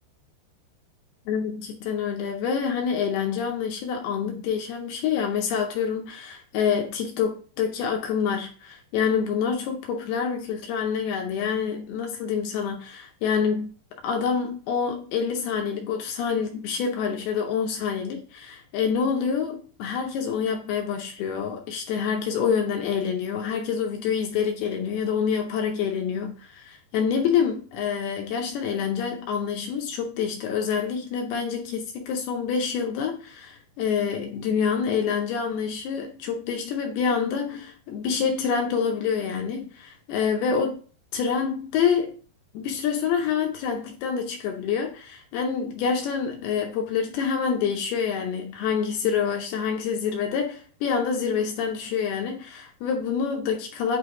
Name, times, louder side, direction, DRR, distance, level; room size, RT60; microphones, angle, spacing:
voice 1, 1.3-13.7 14.0-40.8 41.1-42.1 42.5-54.0, left 6 dB, 80° left, 2.3 m, -27 dB
8.3 x 3.3 x 3.8 m
omnidirectional pair, 5.2 m